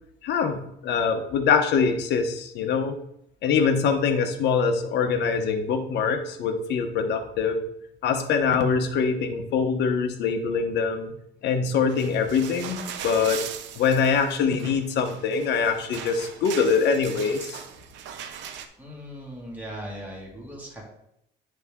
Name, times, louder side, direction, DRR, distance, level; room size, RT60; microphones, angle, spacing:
voice 1, 0.2-3.0 3.4-7.6 8.0-11.1 11.4-13.4 13.7-17.6, left 5 dB, 65° left, 6 dB, 1.0 m, -24 dB
sound 1, 11.9-18.7, right 8 dB, 75° right, 0.6 m, -39 dB
voice 2, 18.8-20.8, equal, 10° right, -3 dB, 2.0 m, -38 dB
9.5 x 3.5 x 3.6 m, 0.77 s
cardioid pair, 120°, 19 cm